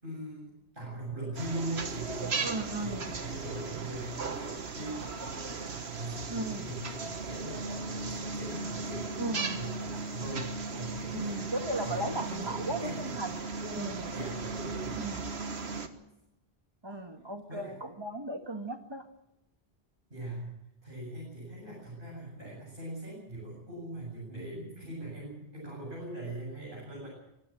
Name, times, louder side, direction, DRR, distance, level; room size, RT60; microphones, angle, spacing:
voice 1, 0.0-11.5 11.8-13.2 14.1-15.0 17.5-17.8 20.1-20.5 20.8-27.1, right 1 dB, 55° right, -5 dB, 8.3 m, -41 dB
sound 1, 1.4-15.9, right 4 dB, 75° right, 1.7 m, -37 dB
voice 2, 2.4-3.1 6.3-6.7 9.2-9.6 11.1-13.4 13.7-14.1 14.9-15.4 16.8-19.1, right 1 dB, 25° right, 6 dB, 1.8 m, -36 dB
24.5 x 16.0 x 7.6 m, 0.87 s
omnidirectional pair, 1.1 m